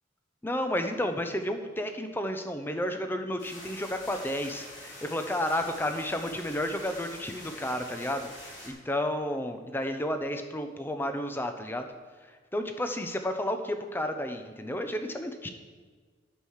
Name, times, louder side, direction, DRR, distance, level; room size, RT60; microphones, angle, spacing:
voice 1, 0.4-8.3 8.6-11.8 12.5-15.5, left 1 dB, 10° left, 6 dB, 0.8 m, -31 dB
sound 1, 3.4-8.7, left 1 dB, 90° left, 3.4 m, -45 dB
8.8 x 7.5 x 6.5 m, 1.5 s
head